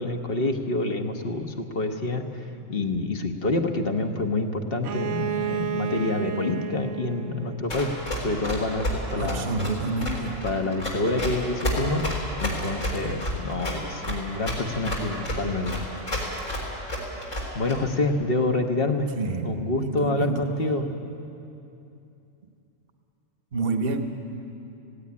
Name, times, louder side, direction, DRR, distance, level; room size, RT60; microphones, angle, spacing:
voice 1, 0.0-2.2 2.7-7.9 8.2-9.5 10.4-12.0 12.4-15.8 17.5-19.1 19.4-20.9, left 2 dB, 50° left, 4 dB, 1.4 m, -27 dB
Bowed string instrument, 4.8-8.5, right 8 dB, 70° right, 1.1 m, -32 dB
Run, 7.7-17.7, left 1 dB, 80° left, 4.5 m, -30 dB
voice 2, 9.1-10.4 19.1-20.4 23.5-24.0, right 3 dB, 50° right, 6 dB, 1.3 m, -28 dB
17.0 x 17.0 x 9.7 m, 2.8 s
omnidirectional pair, 1.3 m